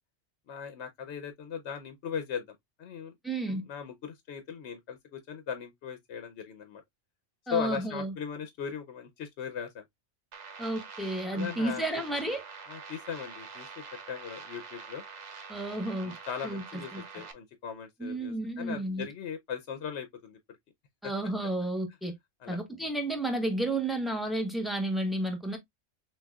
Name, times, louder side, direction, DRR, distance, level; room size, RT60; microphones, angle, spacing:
voice 1, 0.5-3.1 3.5-6.8 7.5-9.8 11.3-11.8 12.7-15.0 16.0-20.4 21.0-21.1 22.4-22.6, left 7 dB, 75° left, 1.0 m, -38 dB
voice 2, 3.2-3.6 7.5-8.1 10.6-12.4 15.5-16.1 16.4-16.6 16.9-17.0 18.0-19.1 21.0-22.1 22.5-25.6, right 1 dB, ahead, 0.9 m, -32 dB
sound 1, 10.3-17.3, right 5 dB, 45° right, 0.7 m, -45 dB
6.1 x 2.5 x 2.3 m
omnidirectional pair, 1.2 m